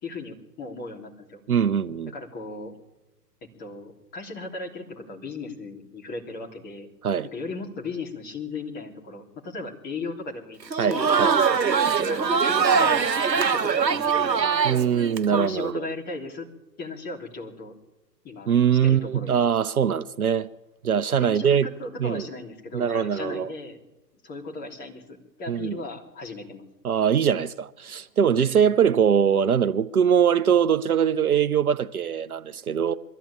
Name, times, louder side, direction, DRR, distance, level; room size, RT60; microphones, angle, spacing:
voice 1, 0.0-1.4 2.1-2.7 3.6-6.9 7.3-11.1 11.9-14.7 15.3-16.5 16.8-17.7 18.2-19.4 21.2-23.8 24.2-26.6, left 3 dB, 20° left, 3.2 m, -37 dB
voice 2, 1.5-2.1 7.0-7.3 10.8-11.4 14.6-15.9 18.5-20.5 20.8-21.7 22.0-22.3 22.7-23.5 25.5-25.8 26.8-32.9, right 8 dB, 60° right, 0.8 m, -22 dB
Crowd, 10.6-15.5, right 6 dB, 85° right, 1.0 m, -22 dB
22.5 x 14.0 x 8.7 m
figure-of-eight pair, 130°, 50 cm